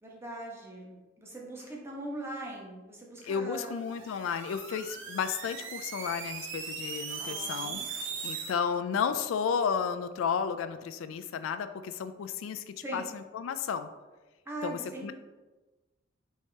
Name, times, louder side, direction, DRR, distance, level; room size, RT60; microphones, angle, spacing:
voice 1, 0.0-3.8 7.2-7.8 12.8-13.1 14.4-15.1, right 1 dB, 15° right, -3 dB, 0.9 m, -41 dB
voice 2, 3.2-13.9 14.6-15.1, left 6 dB, 85° left, 11 dB, 0.3 m, -33 dB
sound 1, 3.7-8.5, right 5 dB, 65° right, 0.6 m, -39 dB
4.6 x 2.8 x 3.2 m, 1.2 s
head